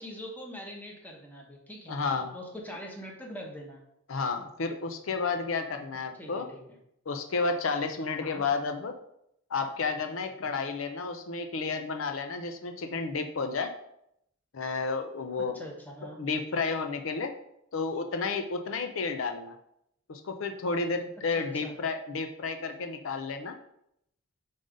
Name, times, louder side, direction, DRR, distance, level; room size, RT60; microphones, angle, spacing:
voice 1, 0.0-3.8 6.2-6.8 8.2-8.4 15.5-16.2 21.3-21.7, equal, 10° left, -1 dB, 1.1 m, -43 dB
voice 2, 1.9-2.3 4.1-6.5 7.1-9.0 9.5-13.7 14.5-15.6 16.2-17.3 17.7-19.6 20.1-23.6, left 4 dB, 70° left, 6 dB, 0.5 m, -31 dB
5.3 x 3.8 x 5.1 m, 0.76 s
head